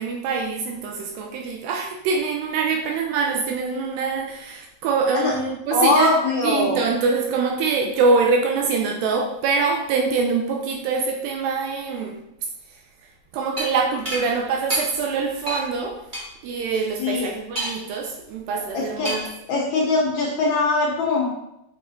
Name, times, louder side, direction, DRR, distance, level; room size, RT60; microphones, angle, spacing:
voice 1, 0.0-6.1 6.4-12.2 13.3-16.0 16.4-19.3, right 4 dB, 80° right, 1 dB, 2.7 m, -24 dB
voice 2, 5.7-6.8 17.0-17.3 18.7-19.1 19.5-21.4, left 3 dB, 75° left, -3 dB, 1.7 m, -21 dB
sound 1, 13.6-13.7 14.1-14.2 14.7-14.8 15.5-15.6 16.1-16.2 17.6-17.9 19.0-19.4, equal, 25° right, 1.0 m, -28 dB
6.6 x 5.3 x 4.1 m, 0.84 s
omnidirectional pair, 4.8 m